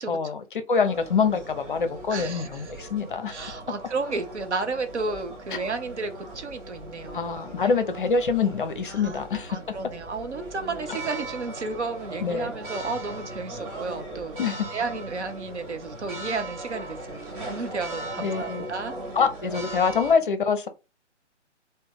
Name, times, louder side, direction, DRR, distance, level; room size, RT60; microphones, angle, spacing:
voice 1, 0.1-3.4 7.1-9.6 12.2-12.5 14.4-14.7 18.2-18.7 19.1-20.7, left 5 dB, 45° left, 0.6 m, -25 dB
sound 1, 0.8-20.1, right 1 dB, 30° right, 1.6 m, -39 dB
voice 2, 2.1-2.8 3.3-7.7 8.9-9.2 9.5-14.4 14.7-19.0, right 4 dB, 70° right, 0.8 m, -33 dB
3.4 x 2.2 x 3.7 m
figure-of-eight pair, 135°, 36 cm